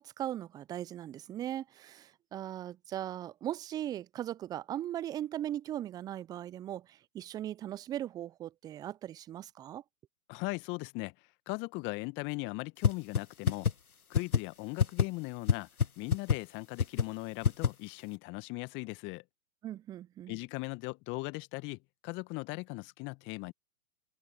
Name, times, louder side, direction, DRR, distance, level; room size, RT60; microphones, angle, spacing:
voice 1, 0.0-9.8 19.6-20.4, right 12 dB, 10° right, 0.6 m, -39 dB
voice 2, 10.3-11.1 11.5-13.7 14.1-15.7 16.0-19.2 20.3-23.5, left 25 dB, 25° left, 1.9 m, -39 dB
sound 1, 12.8-12.9 13.2-13.3 13.5-13.7 14.1-14.4 14.8-15.0 15.5-15.6 15.8-15.9 16.1-16.4 16.8-17.0 17.4-17.7, left 6 dB, 80° left, 1.3 m, -24 dB
open air
figure-of-eight pair, 120°, 43 cm